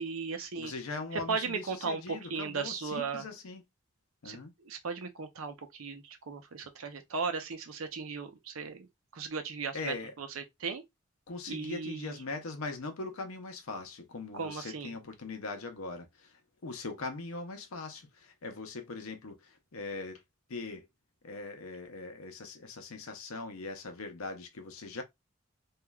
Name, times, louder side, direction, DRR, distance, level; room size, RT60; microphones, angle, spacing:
voice 1, 0.0-0.7 1.1-3.3 4.2-10.8 11.5-12.2 14.3-14.9, right 5 dB, 75° right, 0.6 m, -37 dB
voice 2, 0.6-3.6 4.2-4.5 9.7-10.1 11.3-20.2 20.5-20.9 21.2-25.0, left 3 dB, 85° left, 0.7 m, -41 dB
3.0 x 2.3 x 2.3 m
head